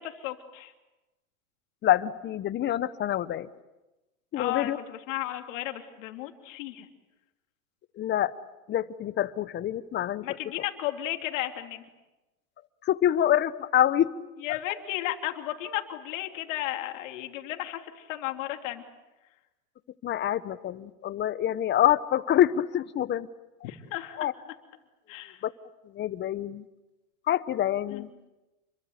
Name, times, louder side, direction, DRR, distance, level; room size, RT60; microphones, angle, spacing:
voice 1, 0.2-0.7 4.3-6.9 10.2-11.8 14.4-18.8 23.6-24.3 25.1-25.4 27.9-28.0, left 14 dB, 60° left, 5 dB, 3.3 m, -34 dB
voice 2, 1.8-3.5 4.3-4.8 8.0-8.3 8.7-10.3 12.8-14.1 20.0-23.3 24.2-24.3 25.4-25.5 25.9-26.6 27.3-28.1, left 11 dB, 25° left, 16 dB, 0.9 m, -26 dB
29.0 x 23.0 x 8.2 m, 1.1 s
hypercardioid pair, 120°, 42 cm